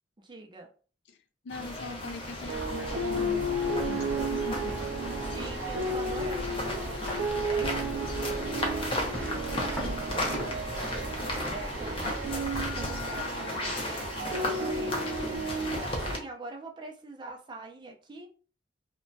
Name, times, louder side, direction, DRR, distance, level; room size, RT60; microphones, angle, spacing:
voice 1, 0.2-0.7 5.2-7.0 7.5-10.5 11.5-18.3, right 2 dB, 25° right, 0.4 m, -44 dB
voice 2, 1.4-4.8, left 3 dB, 70° left, 0.4 m, -42 dB
sound 1, 1.5-16.2, left 1 dB, 30° left, 0.6 m, -35 dB
sound 2, 1.9-13.9, equal, 10° left, 0.9 m, -40 dB
sound 3, 2.5-16.2, right 1 dB, 85° right, 0.4 m, -33 dB
2.9 x 2.2 x 2.6 m
head